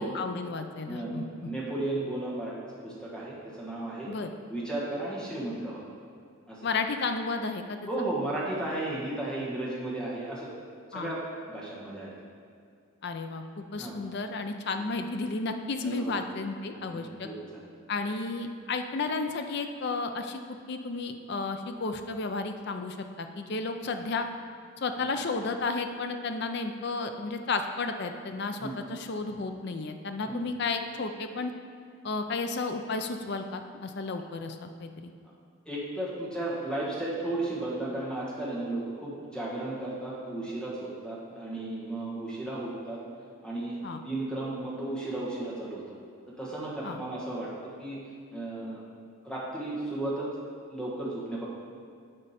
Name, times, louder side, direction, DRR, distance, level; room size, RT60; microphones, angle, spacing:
voice 1, 0.0-1.2 4.1-4.3 6.6-7.8 10.9-11.1 13.0-17.3 17.9-20.4 20.7-24.3 24.8-31.5 32.0-35.1 43.8-44.0 46.8-47.0, left 3 dB, 50° left, 7 dB, 0.5 m, -33 dB
voice 2, 0.8-2.5 2.8-4.1 4.5-5.9 6.5-6.6 7.9-10.5 10.9-12.1 13.8-14.0 15.8-16.1 16.9-17.6 28.6-28.8 30.3-30.4 32.3-32.4 35.2-35.3 35.6-43.0 43.4-45.8 46.4-47.5 47.8-48.0 48.3-48.8 49.2-50.3 50.7-51.5, right 2 dB, 5° left, -6 dB, 1.4 m, -34 dB
8.7 x 5.1 x 4.3 m, 2.3 s
head